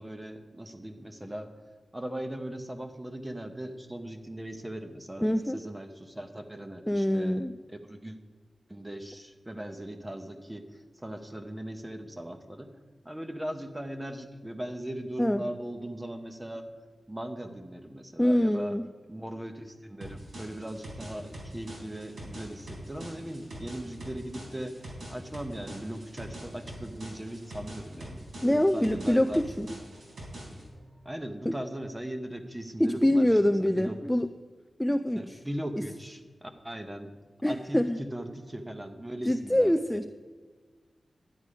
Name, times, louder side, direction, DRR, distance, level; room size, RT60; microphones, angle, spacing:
voice 1, 0.0-1.5 1.9-8.2 8.7-12.7 13.0-16.6 17.1-18.8 19.1-24.7 25.1-29.4 31.0-34.0 35.2-37.1 37.5-40.1, right 1 dB, 10° right, 6 dB, 1.0 m, -39 dB
voice 2, 5.2-5.6 6.9-7.5 15.2-15.4 18.2-18.9 28.4-29.7 31.5-31.6 32.8-34.3 34.8-35.4 37.4-38.0 39.3-40.1, left 1 dB, 5° left, 8 dB, 0.3 m, -25 dB
sound 1, 20.0-30.7, right 1 dB, 80° right, 4.1 m, -44 dB
sound 2, 25.6-31.1, equal, 30° right, 2.4 m, -58 dB
11.5 x 9.9 x 4.9 m, 1.4 s
wide cardioid pair, 130°, 0 cm